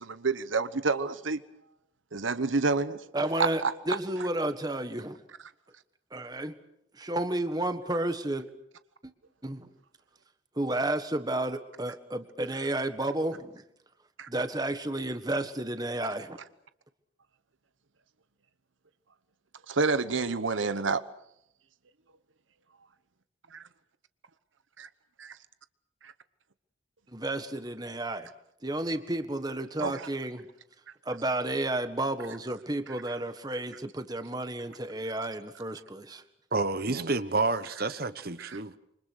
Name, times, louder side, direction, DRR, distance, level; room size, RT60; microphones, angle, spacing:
voice 1, 0.0-1.4 2.1-3.0 3.4-3.7 14.2-14.3 19.7-21.0 23.5-23.6 24.8-24.9 25.2-25.4 26.0-26.1 29.8-30.1 33.1-33.2 36.9-37.1 38.4-38.6, right 4 dB, 80° right, 1.0 m, -29 dB
voice 2, 3.1-5.2 6.1-6.6 6.9-8.5 9.0-9.1 9.4-9.7 10.5-13.6 14.3-16.4 27.1-28.3 28.6-30.4 31.0-36.2, right 1 dB, 20° right, 1.5 m, -32 dB
voice 3, 36.5-38.8, right 3 dB, 50° right, 1.2 m, -29 dB
27.5 x 25.0 x 6.5 m
head